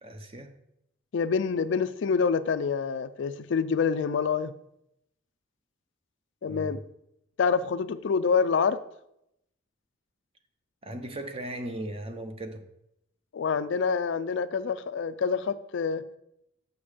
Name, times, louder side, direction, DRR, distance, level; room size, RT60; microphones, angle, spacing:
voice 1, 0.0-0.5 6.4-6.8 10.8-12.7, right 1 dB, 30° right, 0.8 m, -37 dB
voice 2, 1.1-4.5 6.4-6.8 7.4-8.8 13.3-16.0, left 5 dB, 60° left, 0.4 m, -26 dB
7.0 x 6.4 x 5.0 m
head